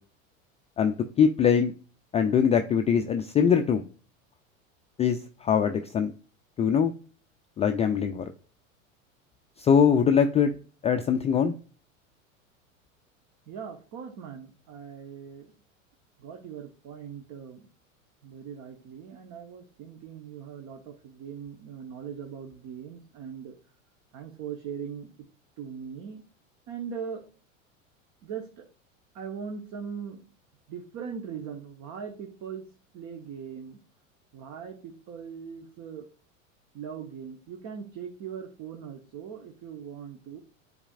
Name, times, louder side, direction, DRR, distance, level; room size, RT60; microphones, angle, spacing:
voice 1, 0.8-1.7 2.1-3.8 5.0-6.1 6.6-6.9 7.6-8.3 9.6-10.5 10.8-11.5, left 7 dB, 15° left, 7 dB, 0.3 m, -22 dB
voice 2, 13.5-15.5 16.2-17.7 18.2-23.6 24.1-25.1 25.6-26.2 26.7-27.2 28.2-28.7 29.1-30.2 30.7-32.6 32.9-33.8 34.3-36.1 36.7-40.4, right 7 dB, 50° right, 3 dB, 1.2 m, -40 dB
9.8 x 4.2 x 2.4 m, 0.38 s
hypercardioid pair, 90°, 40 cm